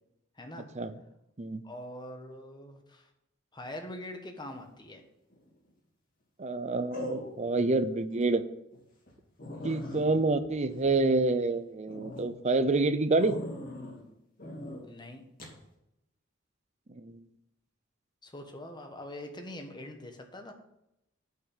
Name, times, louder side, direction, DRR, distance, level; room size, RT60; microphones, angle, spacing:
voice 1, 0.4-0.7 1.6-3.1 3.5-5.0 14.8-15.2 18.2-20.5, left 1 dB, 25° left, 5 dB, 1.3 m, -43 dB
sound 1, 5.3-5.7 6.9-7.7 8.1-8.2 8.7-8.8 9.1-9.2 9.4-11.4 11.9-12.3 13.2-14.0 14.4-14.8 15.4-15.6, left 1 dB, 45° left, 2.6 m, -41 dB
voice 2, 6.4-8.4 9.6-13.4 16.9-17.2, right 3 dB, 35° right, 12 dB, 0.6 m, -27 dB
8.0 x 5.8 x 7.2 m, 0.83 s
head